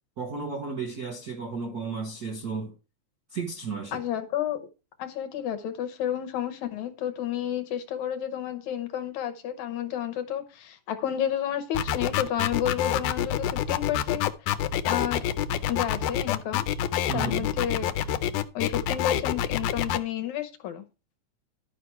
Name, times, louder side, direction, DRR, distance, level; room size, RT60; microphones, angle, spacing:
voice 1, 0.2-2.7 3.3-4.0 17.1-17.5, right 4 dB, 60° right, 1.0 m, -33 dB
voice 2, 3.9-4.7 5.0-14.3 14.8-15.2 15.6-16.7 17.1-18.0 18.5-20.8, left 10 dB, 70° left, 2.1 m, -31 dB
sound 1, 11.7-20.0, left 10 dB, 85° left, 2.2 m, -26 dB
12.0 x 5.1 x 4.7 m
omnidirectional pair, 3.6 m